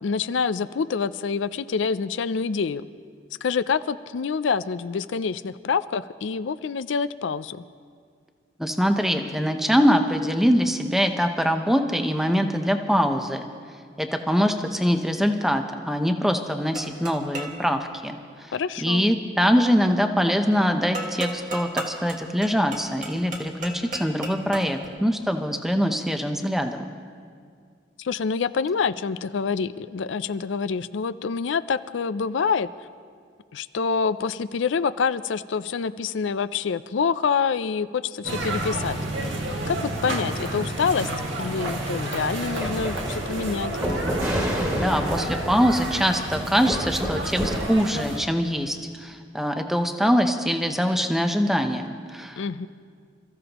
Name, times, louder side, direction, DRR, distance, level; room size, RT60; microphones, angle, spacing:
voice 1, 0.0-2.9 3.4-7.6 18.5-19.1 28.0-32.7 33.5-39.0 39.7-41.1 41.4-43.7 52.4-52.7, left 5 dB, 85° left, 13 dB, 0.4 m, -26 dB
voice 2, 8.6-13.5 14.0-18.5 18.8-26.8 44.8-52.4, equal, ahead, 5 dB, 0.7 m, -23 dB
sound 1, 16.7-17.6 20.9-24.9, right 2 dB, 45° right, 1.6 m, -35 dB
sound 2, 38.2-48.2, right 1 dB, 85° right, 2.0 m, -30 dB
sound 3, 42.6-47.7, equal, 20° right, 2.1 m, -29 dB
28.0 x 14.5 x 3.0 m, 2.1 s
head